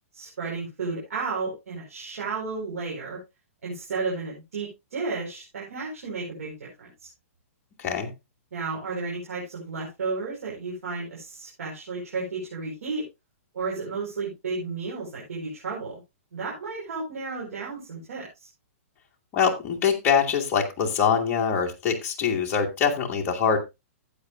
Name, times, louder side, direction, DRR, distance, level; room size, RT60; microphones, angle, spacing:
voice 1, 0.1-3.2 3.6-6.9 8.5-13.0 13.5-16.0 16.3-18.5, right 4 dB, 80° right, -3 dB, 4.9 m, -33 dB
voice 2, 7.8-8.1 19.3-23.6, left 6 dB, 25° left, 0 dB, 2.1 m, -24 dB
15.0 x 8.4 x 2.5 m, 0.23 s
hypercardioid pair, 155°, 8 cm